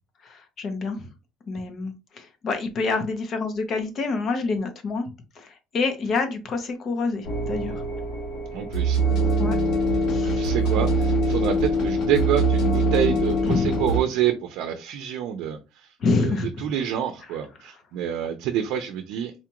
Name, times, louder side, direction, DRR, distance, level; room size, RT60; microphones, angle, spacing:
voice 1, 0.2-1.1 1.5-5.1 5.3-7.8 9.4-9.6 10.1-10.6 13.4-13.8 16.0-16.7, left 3 dB, 35° left, 7 dB, 0.8 m, -27 dB
sound 1, 7.2-14.0, right 1 dB, 60° left, 1.5 m, -23 dB
voice 2, 8.5-9.0 10.1-15.9 16.2-19.3, right 10 dB, 70° right, 6 dB, 0.6 m, -27 dB
4.2 x 2.4 x 2.9 m, 0.27 s
cardioid pair, 170°, 0 cm